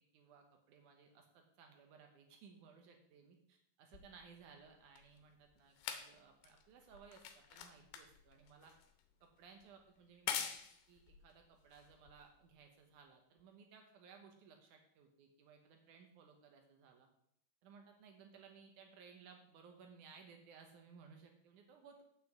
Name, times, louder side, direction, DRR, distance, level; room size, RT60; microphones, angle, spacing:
voice 1, 0.1-8.7 9.2-10.6 10.9-17.1 17.6-22.0, right 5 dB, 80° right, 3 dB, 1.8 m, -61 dB
sound 1, 3.9-12.6 13.4-13.5, left 9 dB, 85° left, 3.1 m, -47 dB
7.4 x 5.9 x 7.7 m, 0.72 s
omnidirectional pair, 5.1 m